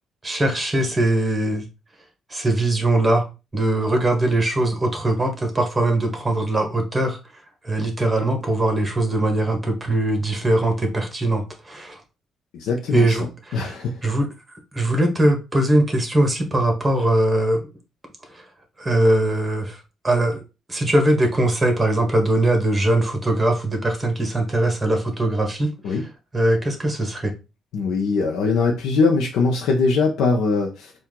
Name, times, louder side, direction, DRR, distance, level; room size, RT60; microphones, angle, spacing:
voice 1, 0.2-1.7 2.3-3.3 3.5-7.2 7.6-12.0 12.9-14.3 14.7-17.6 18.3-18.4 18.8-20.4 20.7-26.0 26.3-27.3, right 1 dB, 20° right, 4 dB, 1.5 m, -21 dB
voice 2, 12.5-14.0 25.8-26.0 27.7-30.9, left 4 dB, 85° left, 0 dB, 0.8 m, -21 dB
4.5 x 2.5 x 3.7 m, 0.28 s
cardioid pair, 90°, 0 cm